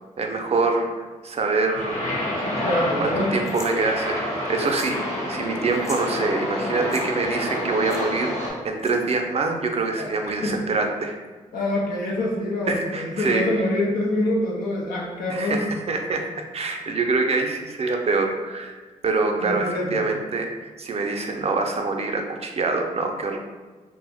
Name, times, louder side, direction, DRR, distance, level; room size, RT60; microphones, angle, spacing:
voice 1, 0.2-2.0 3.0-4.2 4.5-8.3 8.6-11.2 12.7-13.4 15.3-18.8 19.0-23.4, right 3 dB, 45° right, 3 dB, 0.5 m, -25 dB
sound 1, 1.8-8.5, left 1 dB, 50° left, 1.0 m, -28 dB
voice 2, 2.6-3.3 10.0-10.1 10.4-10.6 11.5-15.6 19.4-20.1, left 1 dB, 80° left, -3 dB, 0.5 m, -25 dB
sound 2, 3.5-3.7 4.6-5.0 5.3-5.4 5.7-6.1 6.8-7.0 7.9-8.0 8.8-9.2, left 1 dB, 20° left, 0.6 m, -41 dB
2.5 x 2.0 x 3.4 m, 1.4 s
supercardioid pair, 50°, 14 cm